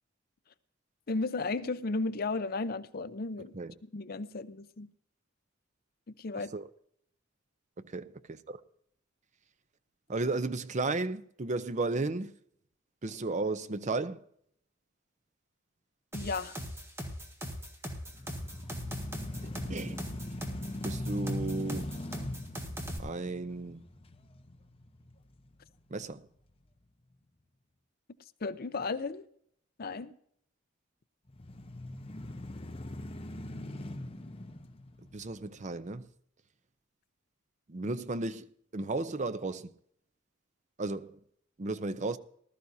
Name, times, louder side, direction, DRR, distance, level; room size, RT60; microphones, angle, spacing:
voice 1, 1.1-3.5 3.9-4.9 6.1-6.5 16.1-16.6 28.4-29.2 29.8-30.1, left 3 dB, 50° left, 0.6 m, -34 dB
voice 2, 6.3-6.7 7.8-8.6 10.1-12.3 13.0-14.2 19.4-20.0 20.8-21.9 23.0-23.8 25.9-26.3 35.1-36.1 37.7-39.7 40.8-41.2 41.6-42.2, right 3 dB, 35° right, 0.6 m, -34 dB
sound 1, 16.1-23.0, equal, 15° right, 1.7 m, -40 dB
sound 2, 18.0-26.2 26.7-26.8 31.3-35.8, left 1 dB, 30° left, 1.0 m, -41 dB
19.5 x 13.0 x 2.7 m
head